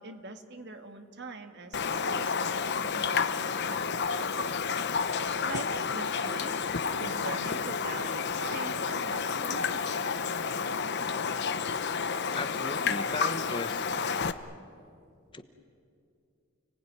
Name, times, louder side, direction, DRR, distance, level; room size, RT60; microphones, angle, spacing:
voice 1, 0.0-4.7 5.4-6.6 7.0-9.9, right 3 dB, 55° right, 7 dB, 1.9 m, -43 dB
Raindrop, 1.7-14.3, left 5 dB, 55° left, 0.9 m, -30 dB
voice 2, 12.3-14.0 15.3-15.4, left 2 dB, 25° left, 9 dB, 1.1 m, -37 dB
30.0 x 19.0 x 9.7 m, 2.5 s
head